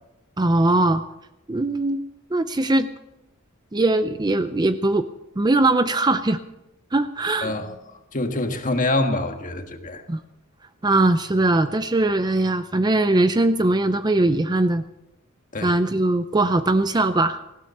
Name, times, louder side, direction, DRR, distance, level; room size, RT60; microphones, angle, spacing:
voice 1, 0.4-1.0 1.5-2.0 2.3-2.9 3.7-5.1 5.4-6.4 6.9-7.5 10.1-10.2 10.8-14.8 15.6-17.4, right 2 dB, 20° right, 11 dB, 0.5 m, -20 dB
voice 2, 7.4-10.0 15.5-15.7, left 2 dB, 40° left, 5 dB, 1.6 m, -26 dB
19.0 x 15.5 x 4.2 m, 0.89 s
head